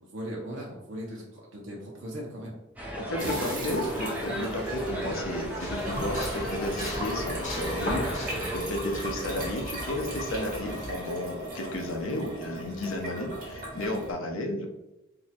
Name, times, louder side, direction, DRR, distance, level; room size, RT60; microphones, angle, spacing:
voice 1, 0.0-2.5 2.9-3.6, equal, 65° right, -2 dB, 0.6 m, -39 dB
sound 1, 2.8-8.6, right 1 dB, 5° right, 0.4 m, -36 dB
voice 2, 3.0-14.7, left 1 dB, 80° left, 2 dB, 0.6 m, -33 dB
sound 2, 3.2-14.1, equal, 45° right, 1.1 m, -37 dB
sound 3, 5.6-10.9, left 1 dB, 40° left, 0.9 m, -38 dB
2.7 x 2.1 x 4.0 m, 0.93 s
head